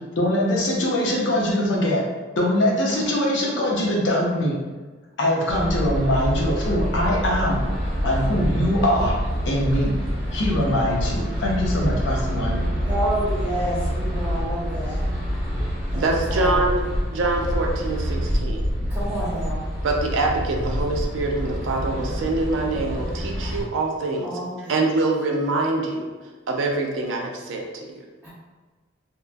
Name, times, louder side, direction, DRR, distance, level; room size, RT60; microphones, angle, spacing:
voice 1, 0.2-2.0 2.4-4.5 5.2-9.2 9.4-9.9 10.3-12.7, left 1 dB, 70° left, -3 dB, 0.6 m, -22 dB
sound 1, 5.5-23.6, equal, 35° right, 1.0 m, -26 dB
voice 2, 12.8-15.1 15.9-16.7 18.9-19.6 24.2-25.0 28.2-28.3, right 1 dB, 10° right, -13 dB, 1.2 m, -29 dB
voice 3, 15.9-16.8 17.1-18.6 19.8-24.3 24.7-26.1 26.5-28.0, right 2 dB, 80° right, 1 dB, 0.4 m, -24 dB
2.8 x 2.4 x 2.2 m, 1.3 s
head